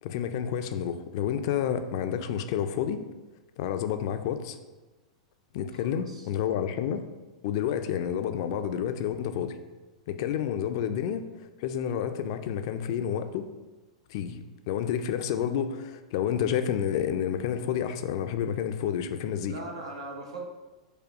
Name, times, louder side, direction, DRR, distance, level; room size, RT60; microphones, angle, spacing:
voice 1, 0.0-3.0 3.6-4.6 5.5-7.0 7.4-9.6 10.1-13.5 14.1-14.4 14.7-19.6, left 9 dB, 55° left, 9 dB, 0.4 m, -29 dB
voice 2, 5.7-6.3 19.5-20.5, right 2 dB, 80° right, 0 dB, 1.0 m, -40 dB
5.0 x 2.3 x 4.6 m, 1.2 s
hypercardioid pair, 100°, 3 cm